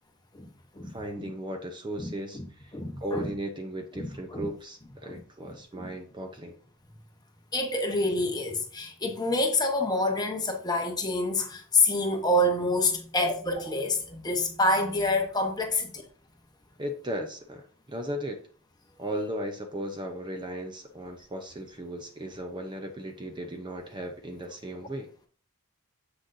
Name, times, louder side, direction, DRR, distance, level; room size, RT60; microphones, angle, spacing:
voice 1, 0.8-6.5 16.8-18.4 19.0-25.1, right 1 dB, 20° right, 0.7 m, -36 dB
voice 2, 2.7-3.3 4.0-4.5 5.0-5.2 5.7-5.9 7.5-16.0, left 2 dB, 20° left, 1.0 m, -27 dB
7.7 x 6.2 x 2.7 m
head